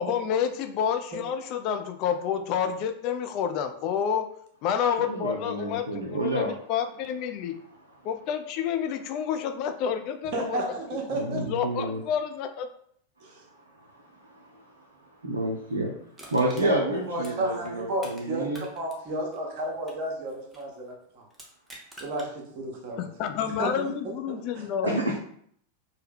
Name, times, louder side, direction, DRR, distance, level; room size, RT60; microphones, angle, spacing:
voice 1, 0.0-4.3 4.6-7.6 8.0-10.6 11.3-12.7 23.0-25.2, left 8 dB, 40° left, 8 dB, 0.3 m, -29 dB
voice 2, 5.1-6.5 11.1-12.0 14.3-14.6 15.2-15.9 16.3-18.6 24.9-25.2, right 1 dB, 75° right, -2 dB, 0.5 m, -29 dB
voice 3, 10.3-11.5 13.2-13.4 16.5-21.2 22.0-23.1 23.4-24.9, right 1 dB, 40° right, -2 dB, 0.9 m, -32 dB
Crushing, 16.1-18.2 18.5-20.7 21.3-22.3 22.8-22.9, right 1 dB, 10° right, 0.7 m, -48 dB
3.2 x 2.2 x 3.4 m, 0.65 s
figure-of-eight pair, 90°, 0 cm